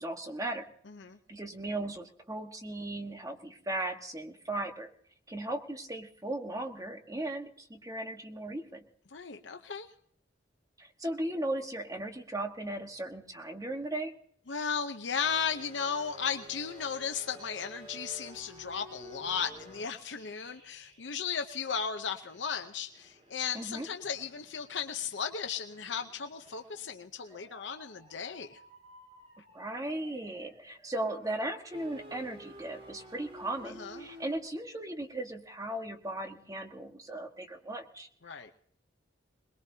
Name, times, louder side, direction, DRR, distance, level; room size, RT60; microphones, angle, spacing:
voice 1, 0.0-0.7 1.3-4.9 5.3-8.8 10.8-14.1 23.5-23.9 29.5-38.1, right 1 dB, 20° right, 4 dB, 1.4 m, -37 dB
voice 2, 0.9-1.2 9.1-9.9 14.5-28.6 33.6-34.1 38.2-38.5, left 6 dB, 70° left, 6 dB, 0.8 m, -35 dB
sound 1, 15.2-21.8 22.2-34.4, right 1 dB, 35° right, 4.1 m, -53 dB
22.5 x 20.5 x 2.8 m, 0.62 s
head